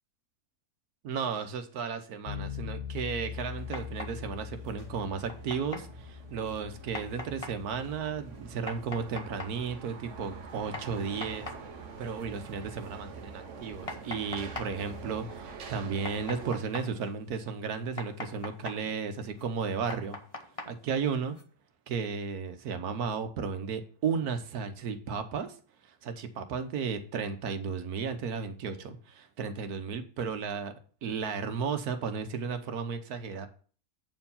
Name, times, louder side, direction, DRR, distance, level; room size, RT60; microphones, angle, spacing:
voice 1, 1.0-11.5 12.0-20.2 20.7-21.4 21.9-25.5 25.8-30.7 31.0-33.5, right 6 dB, 85° right, 8 dB, 1.5 m, -34 dB
sound 1, 2.3-13.2, left 8 dB, 50° left, 0.7 m, -44 dB
sound 2, 2.8-16.6, right 5 dB, 60° right, 1.1 m, -46 dB
sound 3, 3.5-21.4, left 2 dB, 25° left, 1.0 m, -46 dB
8.5 x 4.6 x 5.5 m, 0.43 s
omnidirectional pair, 1.6 m